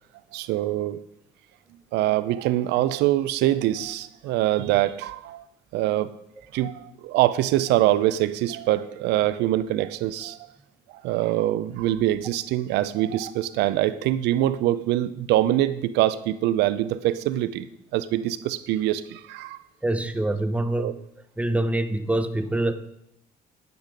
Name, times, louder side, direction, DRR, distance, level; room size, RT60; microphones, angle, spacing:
voice 1, 0.3-1.0 1.9-5.5 5.7-6.1 6.5-10.4 10.9-17.7 17.9-19.6 20.8-20.9, right 14 dB, 85° right, 15 dB, 0.6 m, -24 dB
voice 2, 19.8-20.9 21.4-22.7, right 1 dB, 5° right, 9 dB, 0.8 m, -25 dB
10.0 x 9.3 x 5.2 m, 0.76 s
cardioid pair, 110°, 17 cm